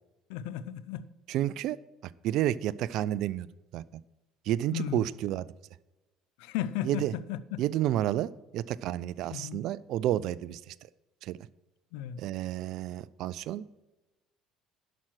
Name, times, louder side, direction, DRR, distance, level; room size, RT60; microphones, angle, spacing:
voice 1, 0.3-1.1 4.7-5.1 6.4-7.6 9.3-9.6 11.9-12.2, left 10 dB, 65° left, 0.5 m, -35 dB
voice 2, 1.3-1.8 2.2-3.5 3.7-3.8 4.5-5.5 6.8-7.1 7.6-10.7 11.2-11.4 12.2-13.6, right 13 dB, 60° right, 0.4 m, -30 dB
11.5 x 6.0 x 6.2 m
figure-of-eight pair, 60°, 0 cm